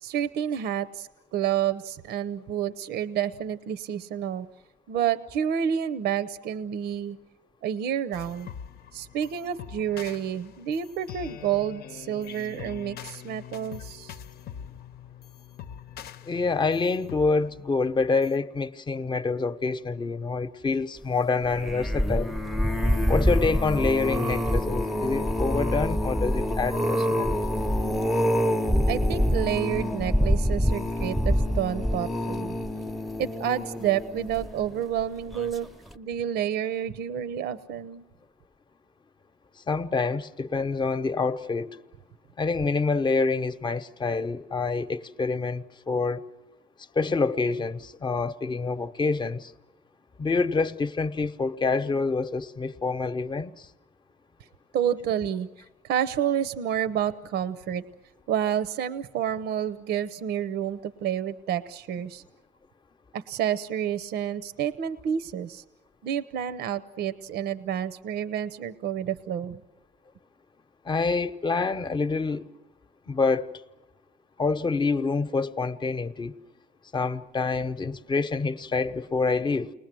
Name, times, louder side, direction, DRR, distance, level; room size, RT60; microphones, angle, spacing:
voice 1, 0.0-4.5 4.9-7.2 7.6-8.5 8.9-14.2 28.9-32.6 33.2-35.7 35.9-38.0 54.7-57.8 58.3-62.2 63.1-65.6 66.0-69.6, right 9 dB, 75° right, 0.8 m, -29 dB
sound 1, 8.1-18.4, left 9 dB, 65° left, 0.8 m, -43 dB
voice 2, 16.2-22.4 23.1-27.5 39.7-41.8 42.4-46.2 46.9-49.5 50.2-53.7 70.8-72.5 73.1-73.6 74.4-76.4 76.9-79.7, left 4 dB, 25° left, 0.9 m, -27 dB
sound 2, 21.4-34.8 35.3-35.7 35.9-36.0, equal, ahead, 0.7 m, -26 dB
29.5 x 20.5 x 7.6 m
cardioid pair, 125°, 17 cm